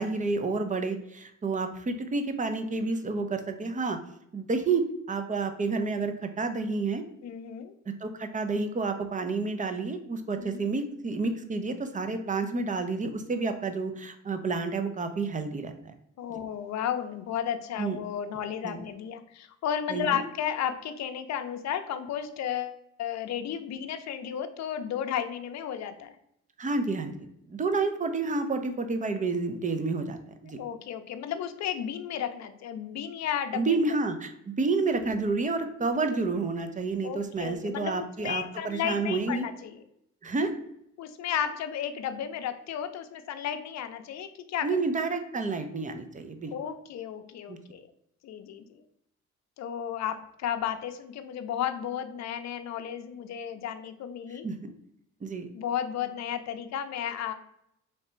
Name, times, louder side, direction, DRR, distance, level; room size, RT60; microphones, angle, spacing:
voice 1, 0.0-4.0 4.3-7.0 7.9-15.9 17.8-18.0 18.6-18.8 19.9-20.2 26.6-30.6 33.5-39.5 40.2-40.5 44.6-46.5 47.5-47.6 54.4-54.7 55.2-55.5, right 3 dB, 25° right, 7 dB, 0.5 m, -30 dB
voice 2, 7.2-7.7 10.4-10.7 16.2-26.2 30.6-33.7 37.0-39.8 41.0-44.7 46.5-47.9 48.2-48.8 49.6-54.5 55.5-57.3, left 9 dB, 60° left, 8 dB, 0.6 m, -33 dB
3.3 x 2.8 x 4.3 m, 0.76 s
cardioid pair, 90°, 30 cm